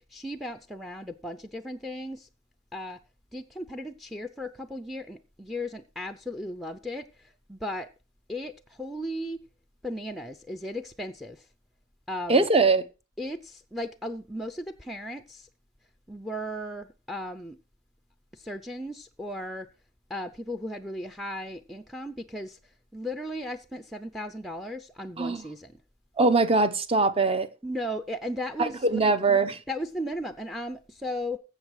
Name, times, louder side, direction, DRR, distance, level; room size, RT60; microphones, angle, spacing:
voice 1, 0.0-2.3 2.7-3.0 3.3-7.9 8.3-9.4 9.8-11.5 12.1-12.5 13.2-15.5 16.1-17.6 18.3-19.7 20.1-25.8 27.6-29.1 29.7-31.4, left 1 dB, ahead, 0.5 m, -36 dB
voice 2, 12.3-12.8 25.2-25.4 26.2-27.5 28.6-29.5, right 3 dB, 25° right, 0.8 m, -22 dB
15.5 x 6.0 x 4.7 m
head